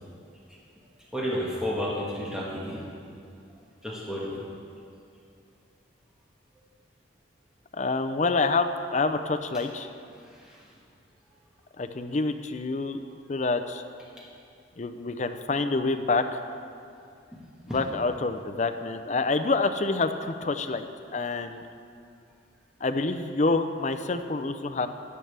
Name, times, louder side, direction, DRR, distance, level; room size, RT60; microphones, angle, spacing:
voice 1, 1.1-2.8 3.8-4.3 10.2-10.7 17.7-17.8, equal, 5° right, -6 dB, 1.5 m, -32 dB
voice 2, 7.7-9.9 11.8-13.0 13.3-13.8 14.8-16.4 17.7-20.9 21.1-21.6 22.8-24.9, left 3 dB, 40° left, 7 dB, 0.5 m, -27 dB
13.5 x 10.0 x 3.4 m, 2.4 s
head